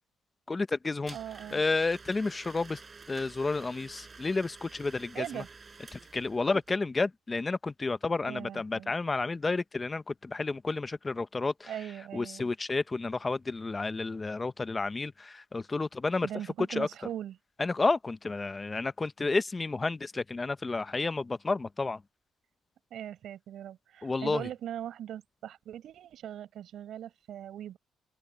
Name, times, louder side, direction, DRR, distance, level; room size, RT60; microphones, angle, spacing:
voice 1, 0.5-1.2 1.5-2.8 3.1-5.4 5.9-11.7 12.1-16.3 16.7-16.9 17.6-22.0 24.0-24.5, left 3 dB, 20° left, 0.7 m, -31 dB
Domestic sounds home sounds, 1.1-6.7, right 4 dB, 25° right, 5.6 m, -50 dB
voice 2, 1.1-1.6 5.1-5.5 6.4-6.5 8.3-8.9 11.7-12.5 16.2-17.4 22.9-27.8, right 11 dB, 65° right, 5.9 m, -40 dB
open air
cardioid pair, 125°, 0 cm